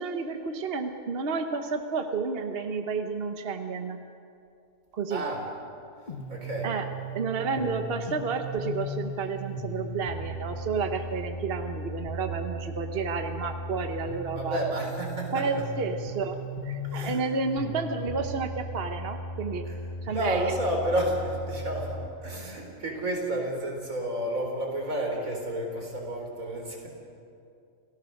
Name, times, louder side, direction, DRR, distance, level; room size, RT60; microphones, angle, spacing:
voice 1, 0.0-4.0 4.9-5.2 6.6-6.8 7.1-14.6 15.3-19.6 20.0-20.5, right 4 dB, 50° right, 6 dB, 1.2 m, -31 dB
voice 2, 5.1-5.5 6.3-6.8 14.3-15.5 16.8-17.2 19.6-19.8 20.1-26.9, right 1 dB, 85° right, 1 dB, 4.4 m, -31 dB
sound 1, 6.1-22.1, right 1 dB, 35° left, 1.6 m, -37 dB
29.0 x 17.0 x 6.5 m, 2.5 s
omnidirectional pair, 1.4 m